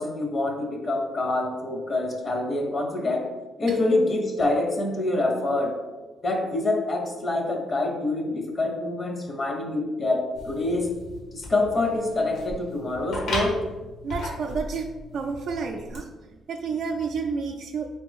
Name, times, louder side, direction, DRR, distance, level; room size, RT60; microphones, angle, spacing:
voice 1, 0.0-3.3 3.6-5.7 6.2-10.9 11.3-13.6, left 2 dB, 40° left, 3 dB, 0.7 m, -26 dB
sound 1, 10.3-16.0, left 1 dB, 75° left, 1.1 m, -36 dB
voice 2, 14.0-14.9 15.1-16.1 16.5-17.9, right 5 dB, 65° right, 2 dB, 0.3 m, -30 dB
3.5 x 3.3 x 3.4 m, 1.2 s
cardioid pair, 90°, 0 cm